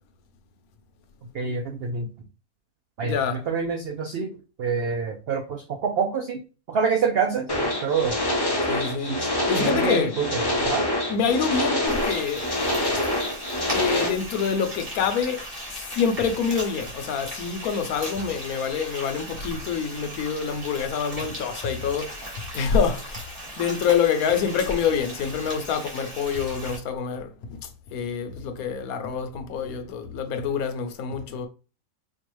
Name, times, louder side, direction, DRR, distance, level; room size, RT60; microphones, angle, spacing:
voice 1, 1.3-2.1 3.0-3.2 3.5-4.3 4.6-6.4 6.7-8.2 9.1-9.3 9.6-10.9, right 5 dB, 70° right, 0.5 m, -26 dB
voice 2, 3.0-3.5 8.7-10.1 11.1-12.5 12.9-13.0 13.7-15.4 15.7-22.2 22.5-23.3 23.6-31.5, left 6 dB, 70° left, 1.1 m, -26 dB
sound 1, 7.5-14.1, left 1 dB, 25° left, 0.5 m, -26 dB
Frying (food), 11.9-26.8, equal, 25° right, 1.3 m, -38 dB
4.5 x 2.3 x 3.0 m
omnidirectional pair, 1.7 m